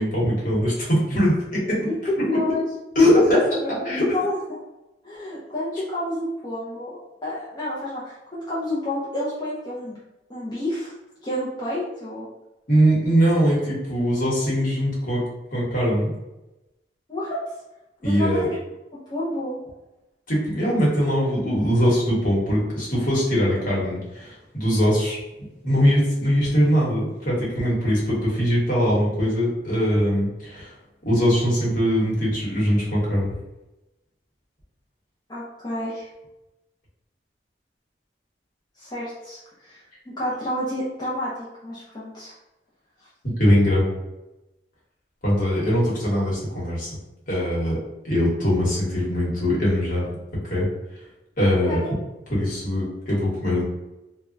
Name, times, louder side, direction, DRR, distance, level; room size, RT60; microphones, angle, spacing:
voice 1, 0.0-1.9 2.9-3.4 3.8-4.1 12.7-15.2 15.5-16.1 18.0-18.5 20.3-30.8 31.0-33.3 43.2-43.9 45.2-46.9 47.3-47.8 48.0-50.1 50.4-50.7 51.4-51.8 52.3-53.6, equal, 50° left, -6 dB, 1.2 m, -21 dB
voice 2, 2.1-2.6 3.2-4.6 5.0-10.0 10.3-10.9 11.2-12.3 17.1-17.4 18.0-18.5 19.1-19.6 35.3-36.1 38.8-42.3 43.0-43.1 51.7-51.9, left 1 dB, 25° left, -8 dB, 0.6 m, -30 dB
3.3 x 2.2 x 2.5 m, 0.98 s
head